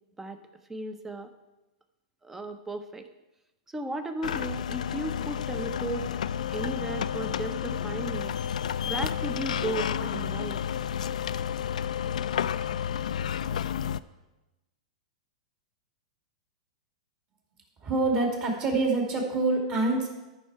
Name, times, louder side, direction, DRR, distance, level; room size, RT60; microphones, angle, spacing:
voice 1, 0.7-1.3 2.2-3.1 3.7-6.1 6.5-8.3 8.8-10.6, right 2 dB, 10° right, 8 dB, 0.7 m, -35 dB
sound 1, 4.2-14.0, left 9 dB, 90° left, 0.3 m, -31 dB
voice 2, 17.8-20.1, right 3 dB, 30° right, 1 dB, 2.4 m, -26 dB
13.5 x 5.5 x 4.7 m, 1.0 s
hypercardioid pair, 140°, 4 cm